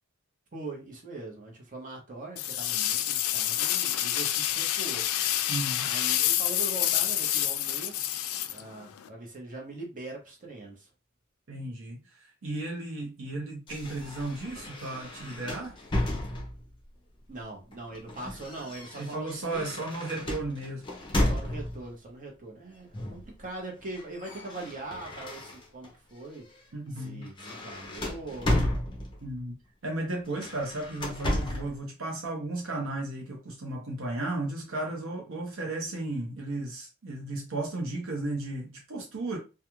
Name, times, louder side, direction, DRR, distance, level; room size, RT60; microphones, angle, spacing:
voice 1, 0.5-5.3 5.8-8.1 8.5-10.9 17.3-19.8 21.3-26.6 26.9-28.7, right 2 dB, 40° right, 0.9 m, -41 dB
sound 1, 2.4-9.1, left 12 dB, 75° left, 0.3 m, -28 dB
voice 2, 5.5-5.9 11.5-15.7 19.0-20.9 26.7-27.3 29.2-29.6 29.8-39.4, right 2 dB, 70° right, 0.7 m, -34 dB
sound 2, 13.7-16.8 17.7-21.9 22.9-23.3 23.6-25.9 26.4-26.6 27.0-29.3 30.3-31.8, left 1 dB, 20° left, 0.6 m, -33 dB
2.3 x 2.3 x 3.0 m
head